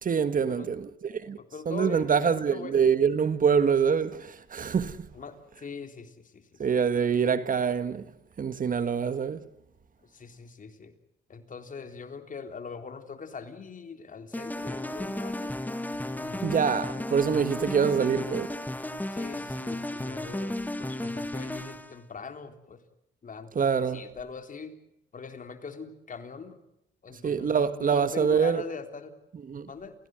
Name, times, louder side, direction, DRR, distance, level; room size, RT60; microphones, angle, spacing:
voice 1, 0.0-1.4 1.6-5.1 6.6-8.0 8.4-9.4 16.4-18.5 23.5-24.0 27.2-28.6 29.5-29.7, right 6 dB, 45° right, 1.6 m, -25 dB
voice 2, 1.4-2.8 5.1-6.6 10.0-10.9 11.3-15.5 16.2-16.5 19.1-22.8 23.2-24.7 25.1-26.6 27.0-29.2 29.7-29.9, left 5 dB, 40° left, 3.7 m, -42 dB
sound 1, 14.3-22.0, left 1 dB, 10° left, 2.1 m, -34 dB
29.0 x 16.5 x 7.9 m
cardioid pair, 90°, 20 cm